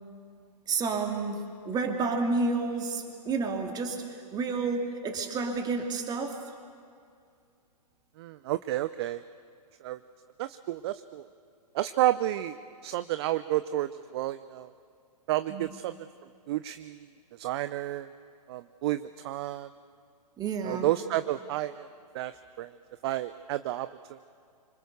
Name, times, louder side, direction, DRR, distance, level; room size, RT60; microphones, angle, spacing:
voice 1, 0.7-1.4 1.6-6.4 15.5-15.7 20.4-20.9, right 4 dB, 20° right, 4 dB, 2.8 m, -30 dB
voice 2, 8.2-9.2 9.8-10.0 10.4-11.3 11.7-12.6 12.8-14.7 15.3-15.9 16.5-17.1 17.4-18.1 18.5-19.7 20.6-21.9 22.1-22.8 23.0-24.2, right 14 dB, 40° right, 13 dB, 0.6 m, -31 dB
26.0 x 25.0 x 6.9 m, 2.3 s
figure-of-eight pair, 120°, 21 cm